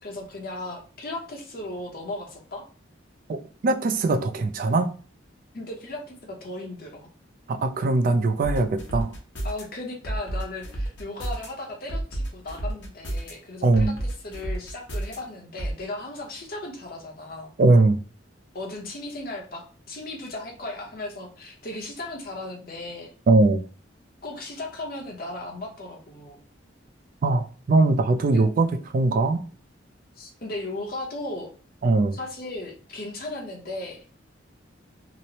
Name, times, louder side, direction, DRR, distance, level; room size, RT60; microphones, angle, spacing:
voice 1, 0.0-2.6 5.5-7.1 9.4-17.5 18.5-23.1 24.2-26.4 28.3-28.4 30.2-31.5 32.1-34.0, left 2 dB, 50° left, 0.7 m, -36 dB
voice 2, 3.3-4.9 7.5-9.1 13.6-13.9 17.6-18.0 23.3-23.6 27.2-28.7 28.9-29.4 31.8-32.1, right 2 dB, 45° right, 0.3 m, -21 dB
sound 1, 8.4-9.6 10.0-11.5 11.9-13.3 13.7-15.2 15.6-15.7, right 1 dB, 70° left, 1.0 m, -30 dB
3.0 x 2.0 x 2.7 m
head